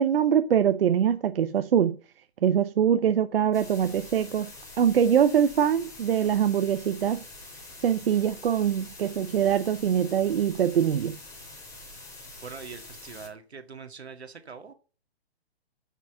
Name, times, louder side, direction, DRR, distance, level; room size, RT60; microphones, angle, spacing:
voice 1, 0.0-2.0 2.4-4.5 4.8-7.2 7.8-11.2, right 9 dB, 65° right, 0.8 m, -23 dB
sound 1, 3.5-13.3, left 2 dB, 10° left, 3.0 m, -45 dB
voice 2, 12.4-14.7, right 5 dB, 85° right, 2.0 m, -43 dB
8.3 x 6.2 x 6.6 m
hypercardioid pair, 145°, 32 cm